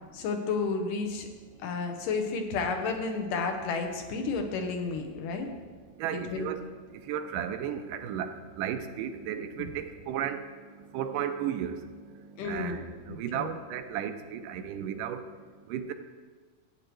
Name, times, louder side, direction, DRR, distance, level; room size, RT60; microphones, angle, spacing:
voice 1, 0.1-1.3 1.6-5.5 6.1-6.5 9.6-9.7 12.4-12.8 13.1-13.5, left 4 dB, 85° left, 4 dB, 2.6 m, -32 dB
voice 2, 6.0-6.6 6.9-10.4 10.8-15.2 15.7-15.9, right 9 dB, 85° right, 8 dB, 2.3 m, -34 dB
15.0 x 8.9 x 3.2 m, 1.5 s
omnidirectional pair, 3.7 m